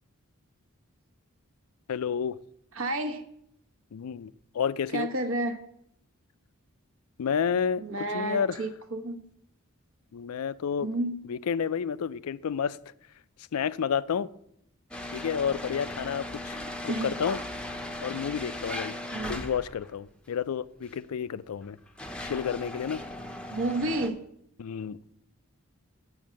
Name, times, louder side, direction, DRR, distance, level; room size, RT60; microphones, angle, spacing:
voice 1, 1.9-2.4 3.9-5.1 7.2-7.8 8.1-8.6 10.1-10.9 11.3-12.8 13.5-14.3 15.1-17.4 18.0-19.0 19.2-21.8 22.2-23.0 24.6-25.0, left 7 dB, 85° left, 0.4 m, -30 dB
voice 2, 2.7-3.2 4.9-5.6 7.8-9.2 10.8-11.2 16.9-17.1 19.1-19.4 23.5-24.2, right 2 dB, 70° right, 1.1 m, -31 dB
sound 1, 14.9-19.9 20.8-21.0 21.6-24.1, left 1 dB, 5° left, 0.6 m, -38 dB
7.1 x 6.5 x 7.4 m
head